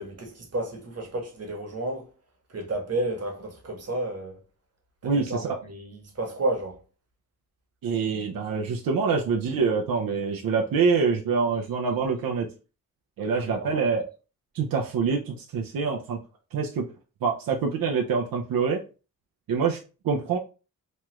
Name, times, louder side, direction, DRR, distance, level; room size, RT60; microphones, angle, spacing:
voice 1, 0.0-2.1 2.5-4.4 5.0-6.8 13.3-13.8, right 1 dB, 45° right, 1.1 m, -32 dB
voice 2, 5.0-5.6 7.8-12.5 13.2-14.1 14.5-16.2 16.5-16.9 17.2-18.8 19.5-19.8 20.0-20.4, right 5 dB, 85° right, 0.5 m, -25 dB
3.1 x 2.3 x 3.0 m
cardioid pair, 75°, 34 cm